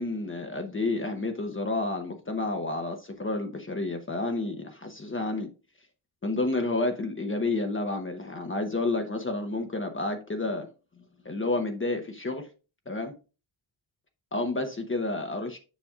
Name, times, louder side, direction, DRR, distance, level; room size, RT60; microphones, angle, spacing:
voice 1, 0.0-5.5 6.2-10.7 11.0-12.5 12.9-13.1 14.3-15.6, left 2 dB, 25° left, 0.9 m, -30 dB
7.2 x 6.9 x 2.4 m
wide cardioid pair, 160°, 48 cm